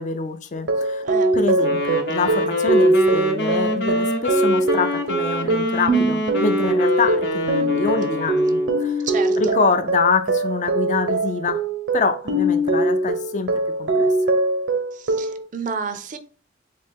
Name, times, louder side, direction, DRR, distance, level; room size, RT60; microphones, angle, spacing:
voice 1, 0.0-1.0 1.3-9.1 9.4-11.6 11.9-14.1, left 4 dB, 40° left, 0.4 m, -25 dB
sound 1, 0.6-15.4, right 1 dB, 80° right, 0.7 m, -22 dB
voice 2, 1.0-1.4 9.0-9.6 14.9-16.2, right 5 dB, 45° right, 0.4 m, -31 dB
Wind instrument woodwind instrument, 1.6-8.8, equal, 65° left, 0.8 m, -26 dB
4.2 x 2.8 x 3.5 m
head